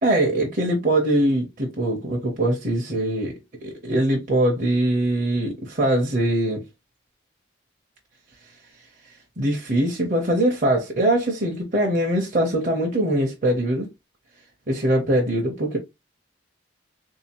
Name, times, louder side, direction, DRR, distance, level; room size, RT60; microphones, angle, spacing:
voice 1, 0.0-6.6 9.4-13.9 14.7-15.8, right 1 dB, 40° right, 0.7 m, -22 dB
3.7 x 2.7 x 2.8 m
head